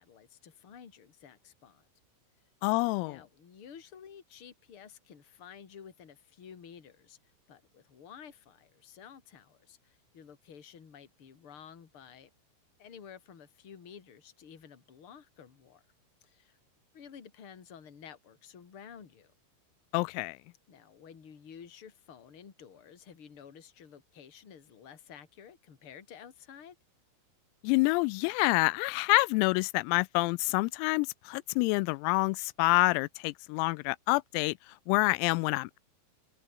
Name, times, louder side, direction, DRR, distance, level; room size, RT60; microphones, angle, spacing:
voice 1, 0.0-1.9 3.0-7.2 7.5-12.3 12.8-15.8 16.2-16.6 16.9-19.3 20.7-26.7, left 7 dB, 35° left, 2.9 m, -52 dB
voice 2, 2.6-3.2 19.9-20.4 27.6-34.5 34.9-35.8, left 25 dB, 90° left, 3.4 m, -27 dB
omnidirectional pair, 6.0 m